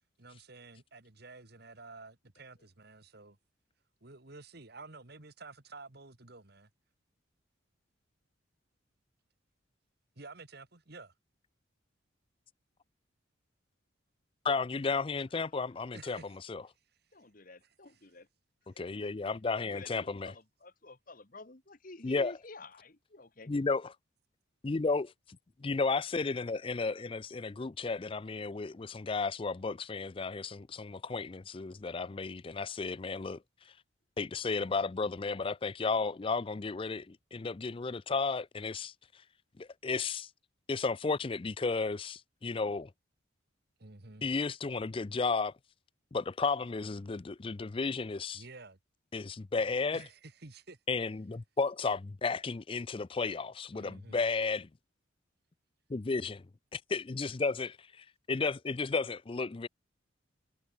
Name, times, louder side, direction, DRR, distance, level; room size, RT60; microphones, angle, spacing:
voice 1, 0.2-3.4 4.0-6.7 10.2-11.1 15.9-16.4 43.8-44.3 48.3-48.8 49.7-50.8 53.7-54.3, right 3 dB, 50° right, 1.8 m, -51 dB
voice 2, 14.4-16.6 18.7-20.3 22.0-22.4 23.5-23.8 24.6-25.1 25.6-33.7 34.2-39.2 39.6-40.3 40.7-42.9 44.2-45.5 46.1-48.4 49.1-50.1 50.9-54.7 55.9-56.4 56.7-59.7, left 4 dB, 25° left, 0.4 m, -33 dB
voice 3, 17.1-18.3 18.7-19.1 19.5-23.5, left 2 dB, 45° left, 1.6 m, -51 dB
head